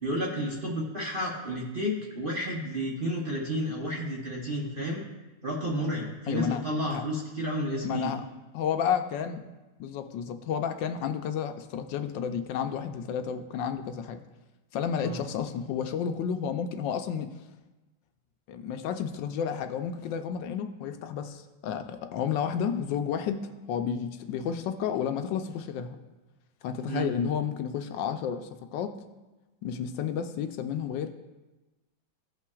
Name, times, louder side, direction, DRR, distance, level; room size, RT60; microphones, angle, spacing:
voice 1, 0.0-5.0 5.4-8.1 15.0-15.2 26.9-27.1, equal, 40° right, -3 dB, 0.8 m, -31 dB
voice 2, 6.3-6.6 6.9-7.0 7.8-8.2 8.5-9.4 9.8-14.2 14.7-17.3 18.5-26.0 26.6-29.0 29.6-31.1, left 8 dB, 75° left, 7 dB, 1.2 m, -31 dB
15.0 x 5.7 x 2.3 m, 1.1 s
omnidirectional pair, 2.1 m